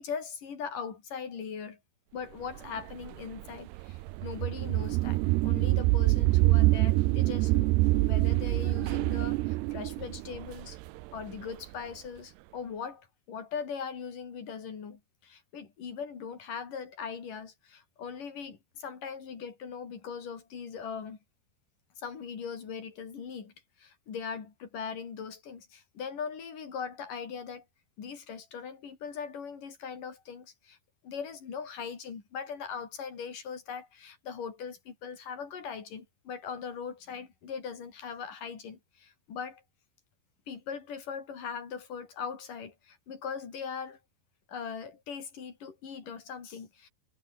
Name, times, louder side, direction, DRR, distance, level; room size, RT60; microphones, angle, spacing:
voice 1, 0.0-1.8 2.1-7.7 8.1-10.8 11.1-21.2 22.0-27.6 28.0-30.8 31.0-39.6 40.5-44.0 44.5-46.9, left 6 dB, 55° left, 5.0 m, -40 dB
sound 1, 2.6-11.5, right 20 dB, 85° right, 2.7 m, -26 dB
omnidirectional pair, 4.8 m